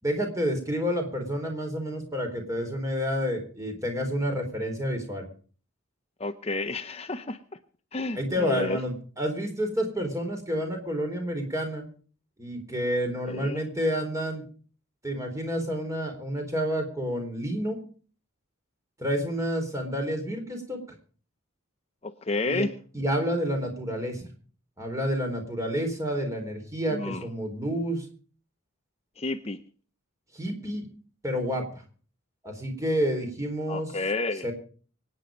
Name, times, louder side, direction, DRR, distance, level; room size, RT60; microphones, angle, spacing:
voice 1, 0.0-5.2 8.2-11.9 12.4-14.4 15.0-17.8 19.0-20.8 22.4-22.7 22.9-24.2 24.8-28.1 30.3-30.9 31.2-31.8 32.4-33.9 34.4-34.5, equal, 15° right, 4 dB, 4.0 m, -29 dB
voice 2, 6.2-7.4 7.9-8.8 13.3-13.6 22.0-22.7 26.9-27.3 29.2-29.6 33.7-34.5, left 2 dB, 30° left, 8 dB, 0.7 m, -30 dB
24.5 x 9.5 x 5.1 m, 0.42 s
head